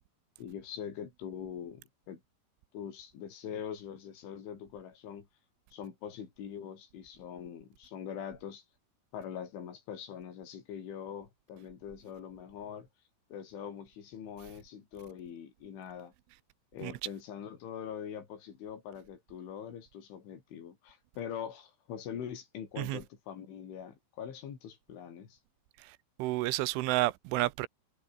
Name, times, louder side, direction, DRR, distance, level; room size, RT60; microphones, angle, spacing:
voice 1, 0.4-2.2 2.7-5.3 5.7-8.6 9.1-12.9 13.3-16.1 16.7-25.4, left 8 dB, 75° left, 6.3 m, -43 dB
voice 2, 26.2-27.7, right 19 dB, 90° right, 3.3 m, -30 dB
omnidirectional pair, 5.6 m